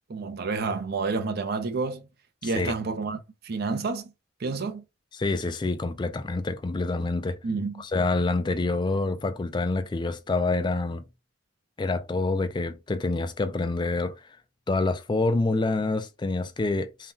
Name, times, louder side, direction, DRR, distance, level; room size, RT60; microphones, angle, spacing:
voice 1, 0.1-2.0 2.4-3.2 3.4-4.1 4.4-4.8 7.4-7.8, right 4 dB, 50° right, 0.5 m, -29 dB
voice 2, 2.4-2.7 5.2-7.4 7.8-11.0 11.8-14.3 14.7-17.1, left 3 dB, 25° left, 0.3 m, -27 dB
2.7 x 2.2 x 3.5 m
head